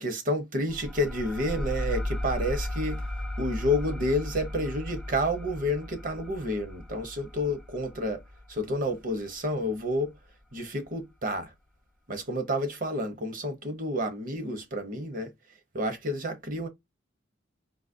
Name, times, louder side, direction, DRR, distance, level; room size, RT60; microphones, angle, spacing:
voice 1, 0.0-3.0 3.4-8.2 8.5-10.1 10.5-11.5 12.1-15.3 15.7-16.7, left 1 dB, 45° right, 0.9 m, -30 dB
sound 1, 0.7-9.9, left 1 dB, ahead, 0.5 m, -36 dB
4.0 x 2.7 x 2.6 m
head